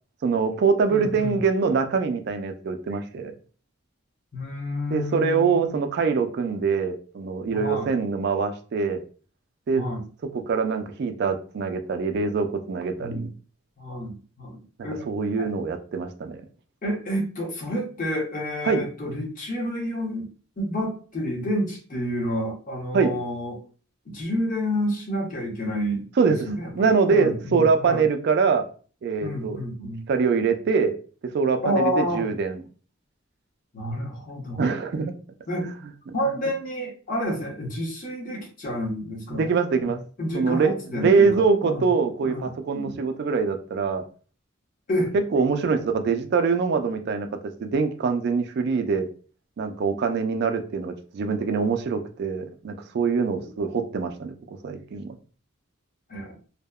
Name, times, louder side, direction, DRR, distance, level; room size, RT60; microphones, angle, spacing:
voice 1, 0.2-3.3 4.9-9.0 9.7-9.9 10.3-13.3 15.1-16.4 18.7-18.8 22.9-23.1 26.2-26.4 26.7-28.7 29.0-29.6 30.1-30.9 31.3-32.6 34.6-35.1 35.6-35.7 36.3-36.4 39.3-40.0 40.3-44.0 45.1-47.3 47.6-49.1 49.6-55.2, right 5 dB, 55° right, 7 dB, 0.3 m, -24 dB
voice 2, 0.9-1.4 4.3-5.8 7.5-7.9 9.7-10.0 13.0-13.3 13.8-15.0 15.4-15.5 16.8-20.3 20.6-23.6 24.1-28.0 29.2-30.0 31.6-32.3 33.7-34.6 35.5-35.7 36.1-39.6 39.8-41.9 42.2-42.5 42.7-43.0 44.9-45.1 53.3-53.5 56.1-56.4, equal, 40° left, -1 dB, 0.7 m, -29 dB
2.7 x 2.0 x 2.2 m, 0.39 s
head